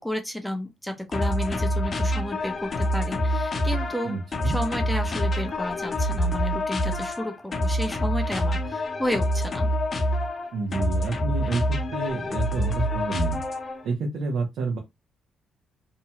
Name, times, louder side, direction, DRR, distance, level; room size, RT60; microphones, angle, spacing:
voice 1, 0.0-4.2 4.4-9.7, left 1 dB, ahead, 0.6 m, -32 dB
sound 1, 1.1-13.9, equal, 40° left, 0.8 m, -26 dB
voice 2, 4.0-4.6 10.5-13.4 13.8-14.8, right 3 dB, 75° right, 0.8 m, -29 dB
2.8 x 2.2 x 2.8 m
cardioid pair, 90°, 0 cm